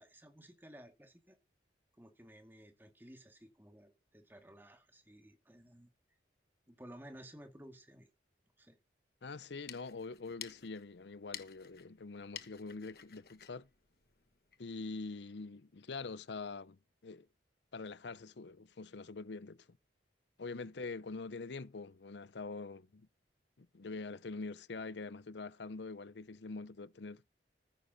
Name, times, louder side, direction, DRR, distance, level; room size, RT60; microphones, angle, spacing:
voice 1, 0.0-1.4 2.0-5.9 6.7-8.1 8.6-8.8, equal, 10° right, 2.1 m, -55 dB
voice 2, 9.2-13.7 14.6-17.3 17.7-19.7 20.4-23.1 23.6-27.2, left 3 dB, 75° left, 0.7 m, -44 dB
sound 1, 9.4-14.7, left 10 dB, 55° left, 1.3 m, -52 dB
14.5 x 10.0 x 4.1 m
head